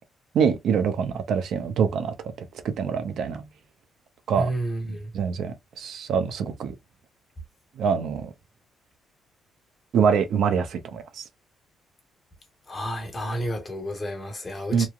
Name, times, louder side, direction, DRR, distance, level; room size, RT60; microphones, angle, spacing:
voice 1, 0.3-2.1 2.6-3.5 4.3-4.5 5.1-6.7 7.8-8.3 9.9-11.2 14.7-14.9, right 6 dB, 70° right, 0.5 m, -24 dB
voice 2, 4.3-5.1 12.7-14.9, right 1 dB, 30° left, 1.2 m, -30 dB
3.0 x 2.3 x 2.4 m
cardioid pair, 90°, 0 cm